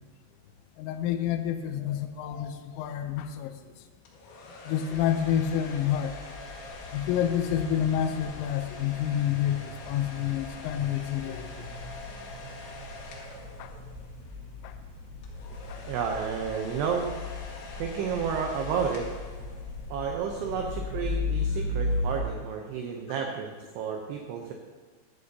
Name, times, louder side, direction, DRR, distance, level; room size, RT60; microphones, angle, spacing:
voice 1, 0.8-3.5 4.7-6.2 6.9-11.5 13.6-13.8 14.6-14.8 15.7-15.8, left 10 dB, 85° left, 7 dB, 3.3 m, -29 dB
sound 1, 4.1-14.2 15.2-20.0, left 3 dB, 70° left, 3.8 m, -45 dB
sound 2, 4.9-22.2, left 2 dB, 45° left, 1.9 m, -37 dB
voice 2, 15.9-17.1 17.7-19.1 19.9-24.5, right 6 dB, 80° right, 2 dB, 2.4 m, -31 dB
14.5 x 12.0 x 2.8 m, 1.4 s
omnidirectional pair, 5.7 m